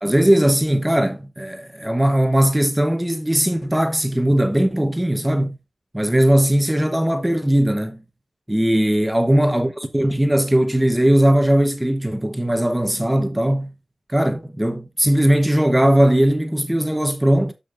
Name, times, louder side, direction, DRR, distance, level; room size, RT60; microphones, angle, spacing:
voice 1, 0.0-5.6 5.9-8.0 8.5-13.7 14.1-17.5, right 1 dB, 10° right, 1.0 m, -19 dB
13.0 x 5.3 x 2.5 m
wide cardioid pair, 85°, 0 cm